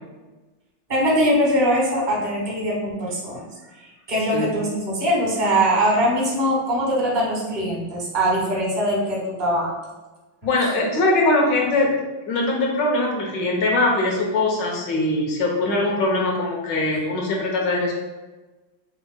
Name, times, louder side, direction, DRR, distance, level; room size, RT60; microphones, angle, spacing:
voice 1, 0.9-3.5 3.7-9.7, equal, 30° right, -4 dB, 1.1 m, -22 dB
voice 2, 10.4-11.9 12.3-17.9, left 2 dB, 60° left, -1 dB, 1.4 m, -21 dB
8.0 x 2.9 x 2.2 m, 1.2 s
omnidirectional pair, 2.4 m